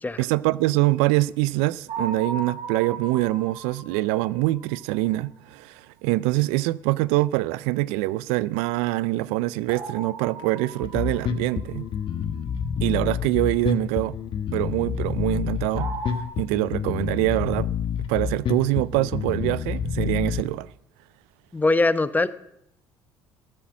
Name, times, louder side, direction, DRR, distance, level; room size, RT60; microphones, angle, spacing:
voice 1, 0.2-11.9 12.8-14.2 14.5-15.9 16.4-17.7 18.1-20.7, right 19 dB, 75° right, 0.4 m, -24 dB
sound 1, 1.9-4.8 9.7-11.9 15.8-16.2, right 4 dB, 55° right, 4.7 m, -37 dB
Bass guitar, 10.8-20.4, left 7 dB, 50° left, 1.3 m, -28 dB
voice 2, 21.5-22.3, left 2 dB, 15° left, 0.9 m, -21 dB
13.5 x 8.8 x 7.2 m
hypercardioid pair, 65°, 11 cm